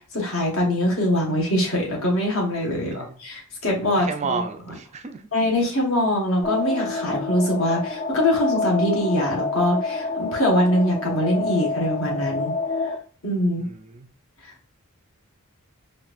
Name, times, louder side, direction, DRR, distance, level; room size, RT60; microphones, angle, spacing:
voice 1, 0.1-4.4 5.3-12.5 13.2-13.6, left 1 dB, 65° left, -1 dB, 1.3 m, -23 dB
voice 2, 4.0-5.2 13.6-14.1, right 4 dB, 30° right, 6 dB, 0.4 m, -31 dB
sound 1, 6.4-13.0, left 3 dB, 30° left, 0.5 m, -28 dB
4.3 x 2.5 x 2.4 m, 0.41 s
head